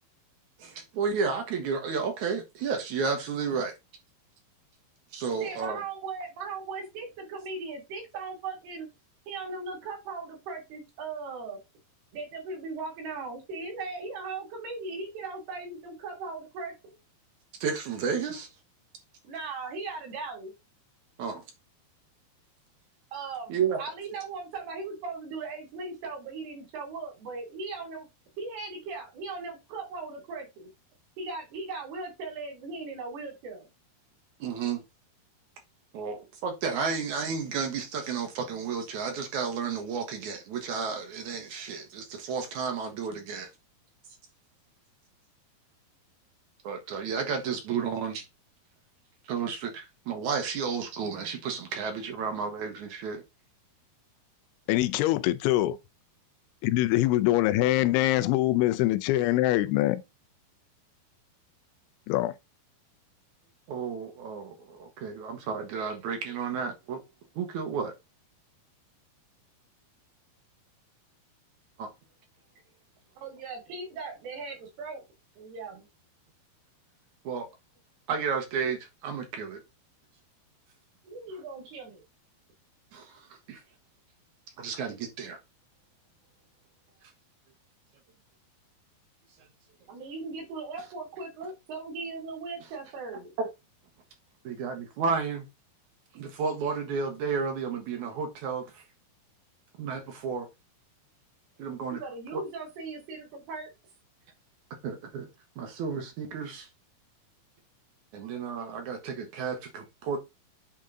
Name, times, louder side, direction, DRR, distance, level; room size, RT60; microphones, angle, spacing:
voice 1, 0.6-3.7 5.1-5.8 17.6-18.5 21.2-21.4 23.5-23.8 34.4-34.8 35.9-43.5 46.6-48.2 49.2-53.2 63.7-67.0 67.4-67.9 71.8-71.9 77.2-77.5 78.1-79.6 82.9-83.6 84.6-85.4 93.4-93.5 94.4-95.5 96.1-98.8 99.8-100.5 101.6-102.0 102.3-102.4 104.8-105.3 105.6-106.7 108.1-110.2, right 5 dB, 65° right, 2.1 m, -32 dB
voice 2, 5.4-8.9 9.3-11.6 12.1-16.7 19.2-20.5 23.1-28.1 28.4-30.7 31.2-33.7 73.2-75.0 75.4-75.9 81.0-82.0 89.9-93.3 101.9-103.7, right 4 dB, 85° right, 4.6 m, -38 dB
voice 3, 54.7-55.8 56.6-60.0 62.1-62.3, left 16 dB, 85° left, 2.5 m, -24 dB
8.7 x 3.7 x 3.8 m
omnidirectional pair, 4.5 m